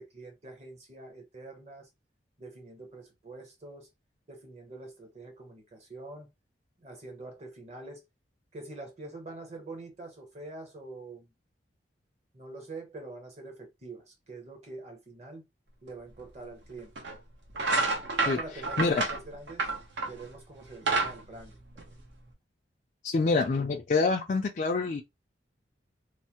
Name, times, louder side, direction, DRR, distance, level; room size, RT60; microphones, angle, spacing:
voice 1, 0.0-1.9 2.4-3.9 4.3-6.3 6.8-8.0 8.5-11.3 12.3-15.5 15.8-16.9 18.2-19.7 20.0-21.6 21.9-22.0, right 2 dB, 35° right, 0.9 m, -45 dB
sound 1, 16.2-16.3 16.9-17.2 17.5-20.2 20.6-22.3, right 3 dB, 75° right, 0.8 m, -29 dB
voice 2, 23.0-25.0, left 3 dB, 45° left, 0.3 m, -26 dB
3.2 x 2.0 x 2.9 m
head